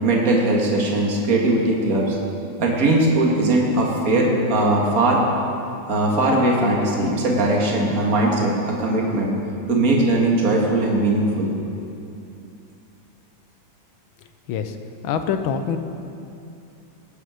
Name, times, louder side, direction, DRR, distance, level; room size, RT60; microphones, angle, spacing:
voice 1, 0.0-2.2 2.6-5.2 5.9-9.3 9.7-11.5, right 2 dB, 45° right, -2 dB, 2.2 m, -19 dB
voice 2, 15.0-15.8, left 7 dB, 85° left, 8 dB, 1.6 m, -24 dB
19.0 x 8.4 x 5.1 m, 2.7 s
omnidirectional pair, 2.2 m